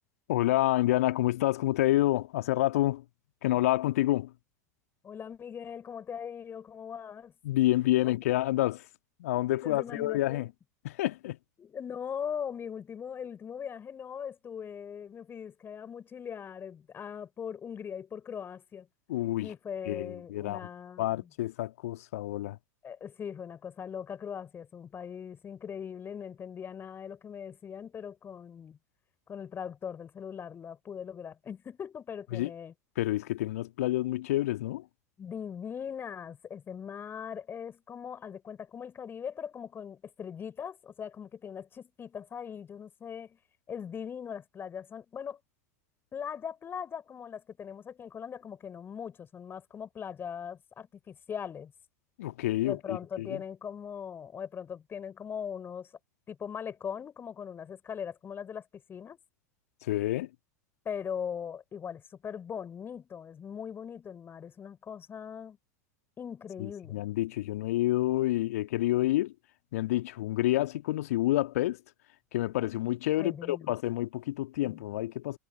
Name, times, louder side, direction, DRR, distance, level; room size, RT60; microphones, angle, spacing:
voice 1, 0.3-3.0 3.4-4.3 7.4-8.8 9.2-10.5 10.8-11.4 19.1-19.5 19.9-20.6 21.0-22.6 32.3-32.5 33.0-34.8 52.2-53.4 59.8-60.3 66.6-69.3 69.7-71.8 72.3-75.4, left 15 dB, 60° left, 1.8 m, -28 dB
voice 2, 5.0-7.3 8.0-8.2 9.6-10.5 11.6-18.9 19.4-21.3 22.8-28.8 29.3-32.7 35.2-43.4 43.7-45.4 46.1-51.7 52.6-55.9 56.3-59.2 60.8-65.6 66.2-67.0 73.2-73.7 74.6-74.8, left 7 dB, 25° left, 5.1 m, -40 dB
figure-of-eight pair, 85°, 9 cm